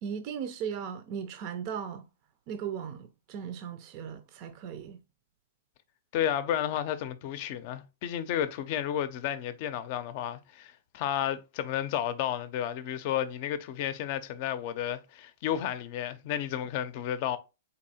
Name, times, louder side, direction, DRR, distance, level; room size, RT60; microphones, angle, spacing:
voice 1, 0.0-2.0 2.5-5.0, right 7 dB, 40° right, 0.5 m, -37 dB
voice 2, 6.1-17.4, left 10 dB, 45° left, 0.6 m, -32 dB
4.2 x 2.7 x 4.2 m
hypercardioid pair, 140°, 0 cm